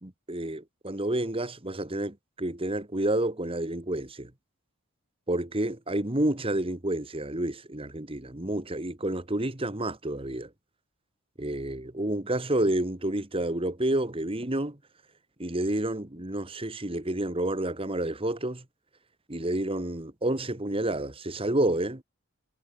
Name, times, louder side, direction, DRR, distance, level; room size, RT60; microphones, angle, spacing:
voice 1, 0.0-4.3 5.3-10.5 11.4-14.8 15.4-18.6 19.3-22.0, right 1 dB, 25° right, 1.8 m, -29 dB
head